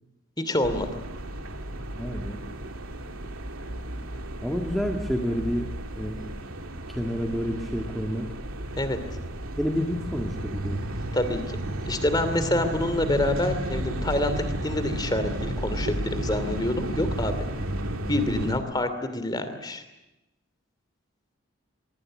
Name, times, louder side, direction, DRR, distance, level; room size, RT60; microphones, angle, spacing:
voice 1, 0.4-0.9 8.8-9.0 11.1-11.4 11.9-17.3 18.1-19.8, left 1 dB, 20° left, 10 dB, 2.6 m, -27 dB
sound 1, 0.6-18.6, right 1 dB, 85° right, 2.7 m, -33 dB
voice 2, 2.0-2.4 4.4-6.2 6.9-8.3 9.6-10.9 18.3-18.6, equal, ahead, 1 dB, 1.8 m, -29 dB
24.0 x 23.5 x 7.6 m, 0.95 s
head